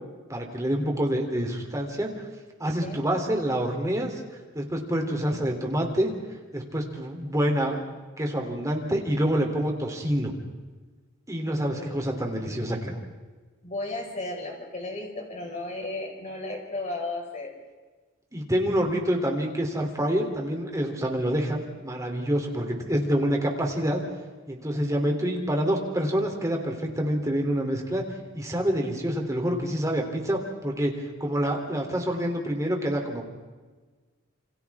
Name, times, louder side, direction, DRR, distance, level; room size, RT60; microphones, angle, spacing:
voice 1, 0.3-2.3 2.6-4.2 4.5-6.1 6.5-10.3 11.3-13.0 18.3-24.0 24.5-28.0 28.3-30.9 31.2-33.2, equal, 15° right, 1 dB, 3.2 m, -27 dB
voice 2, 2.6-3.0 11.6-12.2 13.6-17.5 24.7-25.0, left 2 dB, 35° left, 0 dB, 5.2 m, -35 dB
28.5 x 26.0 x 3.6 m, 1.3 s
head